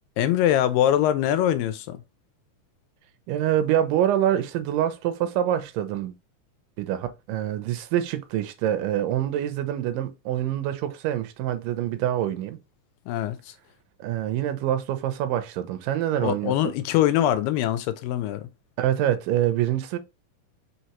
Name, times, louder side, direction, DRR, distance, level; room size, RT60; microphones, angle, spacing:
voice 1, 0.2-2.0 13.1-13.5 16.2-18.5, left 11 dB, 85° left, 2.3 m, -23 dB
voice 2, 3.3-6.1 6.8-12.6 14.0-16.7 18.8-20.0, right 11 dB, 80° right, 2.1 m, -25 dB
5.6 x 3.1 x 2.9 m
omnidirectional pair, 3.9 m